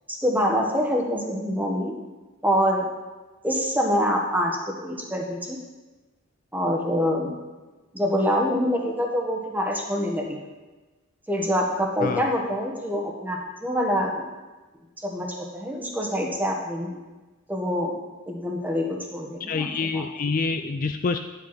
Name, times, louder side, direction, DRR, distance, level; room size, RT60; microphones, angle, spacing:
voice 1, 0.1-1.9 2.4-2.8 3.4-5.6 6.5-7.4 7.9-10.4 11.3-14.3 15.0-17.0 17.5-18.0 18.3-20.0, equal, 10° right, 0 dB, 1.4 m, -25 dB
voice 2, 19.4-21.2, left 4 dB, 40° left, 8 dB, 0.4 m, -27 dB
10.5 x 7.9 x 5.8 m, 1.2 s
head